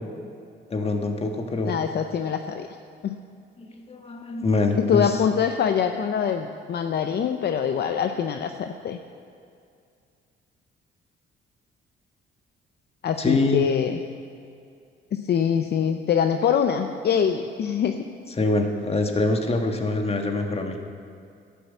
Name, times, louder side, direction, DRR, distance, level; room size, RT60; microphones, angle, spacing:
voice 1, 0.7-1.7 3.6-5.2 13.2-13.7 18.4-20.8, left 2 dB, 30° left, 4 dB, 1.5 m, -24 dB
voice 2, 1.7-2.7 3.0-3.2 4.8-9.0 13.0-14.0 15.1-18.0, left 7 dB, 55° left, 7 dB, 0.6 m, -24 dB
11.5 x 9.4 x 7.3 m, 2.4 s
cardioid pair, 90°, 20 cm